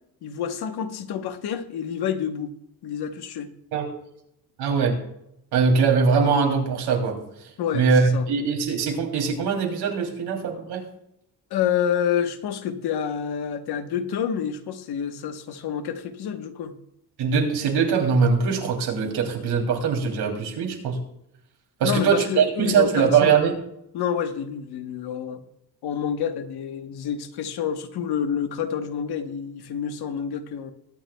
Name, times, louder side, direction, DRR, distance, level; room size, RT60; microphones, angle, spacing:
voice 1, 0.2-2.5 2.8-3.5 7.6-8.3 11.5-16.7 21.8-23.4 23.9-25.4 25.8-30.7, left 8 dB, 75° left, 8 dB, 1.2 m, -28 dB
voice 2, 4.6-5.0 5.5-7.2 7.7-10.8 17.2-21.0 21.8-23.5, right 5 dB, 90° right, 1 dB, 3.0 m, -22 dB
22.0 x 9.3 x 2.3 m, 0.80 s
cardioid pair, 155°, 38 cm